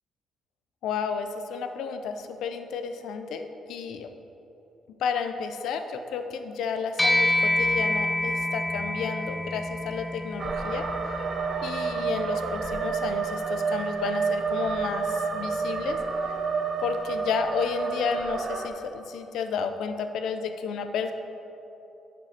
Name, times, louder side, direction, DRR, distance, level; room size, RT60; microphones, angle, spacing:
voice 1, 0.8-4.1 5.0-10.8 11.6-16.0 16.3-16.4 16.8-21.1, left 6 dB, 80° left, 8 dB, 0.5 m, -32 dB
sound 1, 7.0-16.6, left 1 dB, 15° left, 0.7 m, -30 dB
sound 2, 10.4-18.7, right 5 dB, 50° right, 0.6 m, -29 dB
7.6 x 5.1 x 5.7 m, 3.0 s
cardioid pair, 90°, 0 cm